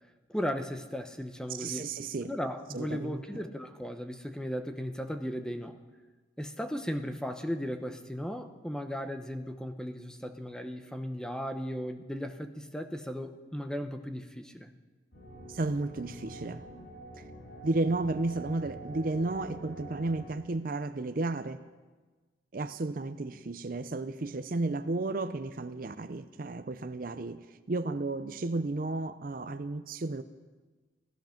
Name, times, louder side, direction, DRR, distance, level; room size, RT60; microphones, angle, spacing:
voice 1, 0.3-1.9 2.2-5.8 6.4-14.7, equal, 5° left, 7 dB, 0.8 m, -36 dB
voice 2, 1.5-2.3 2.7-3.2 15.5-16.6 17.2-17.3 17.6-21.7 22.5-30.2, right 2 dB, 50° right, 12 dB, 0.5 m, -33 dB
sound 1, 15.1-20.4, right 1 dB, 90° left, 4.5 m, -46 dB
17.0 x 14.5 x 5.8 m, 1.3 s
head